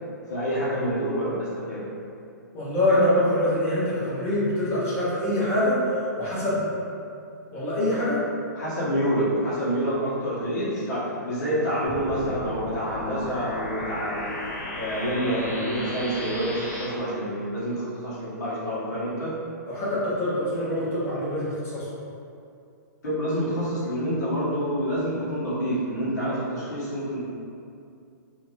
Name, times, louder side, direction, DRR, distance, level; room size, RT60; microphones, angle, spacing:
voice 1, 0.3-1.8 8.5-14.3 14.7-19.3 23.0-27.2, equal, 65° left, -9 dB, 1.3 m, -27 dB
voice 2, 2.5-5.8 6.2-6.7 7.5-8.2 19.7-21.9, left 1 dB, 20° left, -11 dB, 1.0 m, -24 dB
sound 1, 11.8-16.8, left 1 dB, 45° left, 1.3 m, -34 dB
2.8 x 2.5 x 3.1 m, 2.5 s
hypercardioid pair, 130°, 10 cm